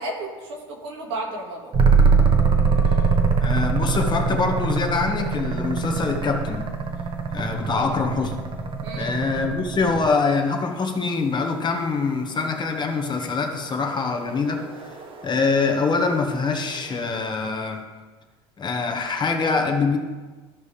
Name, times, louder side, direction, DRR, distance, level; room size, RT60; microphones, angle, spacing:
voice 1, 0.0-1.7 7.7-8.0 8.8-9.2, right 2 dB, 85° right, -1 dB, 2.1 m, -33 dB
sound 1, 1.7-10.3 12.5-17.1, right 5 dB, 40° right, 1.3 m, -23 dB
voice 2, 3.4-6.7 7.3-8.4 9.0-14.7 15.2-17.9 18.6-20.0, left 4 dB, 30° left, 4 dB, 1.4 m, -24 dB
13.5 x 5.4 x 3.4 m, 1.3 s
hypercardioid pair, 80°, 14 cm